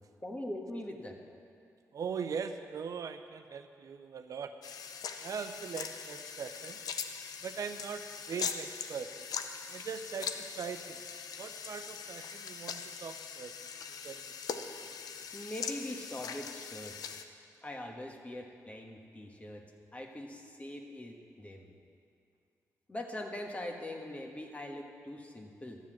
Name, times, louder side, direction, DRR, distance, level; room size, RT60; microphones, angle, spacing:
voice 1, 0.2-1.2 15.3-17.2 17.6-19.6 19.9-21.7 22.9-25.8, left 1 dB, 20° left, 2 dB, 1.4 m, -42 dB
voice 2, 1.9-4.5 5.2-6.8 7.4-9.1 9.7-11.0 11.4-13.6 14.0-14.3, right 6 dB, 65° right, 8 dB, 0.6 m, -40 dB
sound 1, 4.6-17.2, left 6 dB, 85° left, 0.6 m, -41 dB
12.0 x 7.3 x 7.3 m, 2.3 s
cardioid pair, 85°, 6 cm